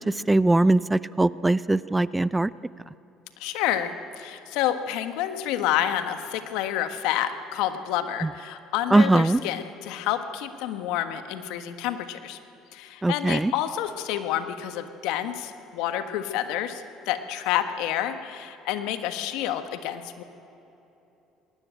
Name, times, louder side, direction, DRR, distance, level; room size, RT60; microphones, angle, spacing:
voice 1, 0.3-2.5 8.9-9.4 13.0-13.5, right 2 dB, 15° right, 18 dB, 0.5 m, -20 dB
voice 2, 3.4-12.4 12.7-20.2, left 11 dB, 70° left, 9 dB, 1.4 m, -29 dB
20.0 x 18.0 x 8.9 m, 2.9 s
hypercardioid pair, 60°, 0 cm